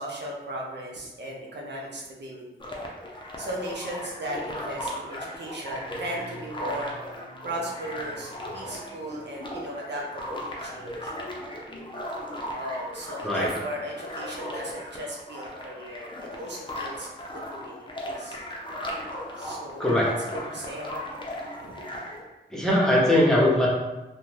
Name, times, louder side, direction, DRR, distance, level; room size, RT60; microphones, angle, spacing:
voice 1, 0.0-2.7 3.4-11.4 12.5-17.1 17.5-18.4 19.4-21.2 21.6-21.8, right 1 dB, 65° right, -2 dB, 0.6 m, -37 dB
sound 1, 2.6-22.2, equal, 25° left, 0.6 m, -37 dB
voice 2, 22.5-23.7, left 1 dB, 5° left, -6 dB, 0.9 m, -20 dB
2.4 x 2.2 x 3.2 m, 1.0 s
cardioid pair, 50°, 19 cm